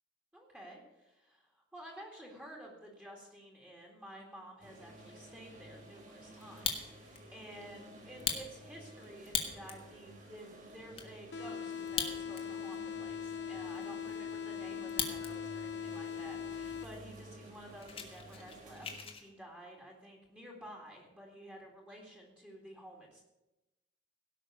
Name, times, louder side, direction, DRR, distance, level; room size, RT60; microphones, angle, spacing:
voice 1, 0.3-23.2, equal, 5° right, -2 dB, 2.2 m, -52 dB
sound 1, 4.6-19.0, right 1 dB, 45° right, 3.6 m, -53 dB
Fire, 6.4-7.2 7.6-7.7 8.1-9.8 10.3-10.4 10.6-11.1 11.8-12.6 12.9-13.0 13.6-15.3 15.6-16.1 16.7-16.8 17.0-17.2 17.5-19.2, left 6 dB, 30° left, 1.5 m, -38 dB
sound 2, 11.3-17.3, left 7 dB, 65° left, 0.6 m, -41 dB
17.0 x 6.0 x 7.8 m, 0.99 s
head